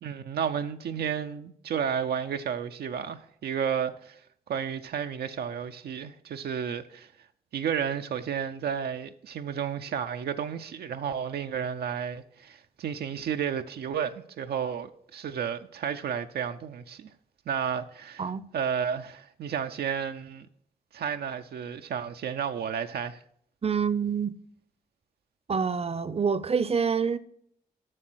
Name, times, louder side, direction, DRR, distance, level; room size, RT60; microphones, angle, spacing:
voice 1, 0.0-4.2 4.5-7.1 7.5-17.1 17.5-20.5 20.9-23.2, right 7 dB, 80° right, 0.5 m, -32 dB
voice 2, 23.6-24.3 25.5-27.2, right 6 dB, 40° right, 0.6 m, -26 dB
7.5 x 6.5 x 6.1 m
cardioid pair, 45°, 16 cm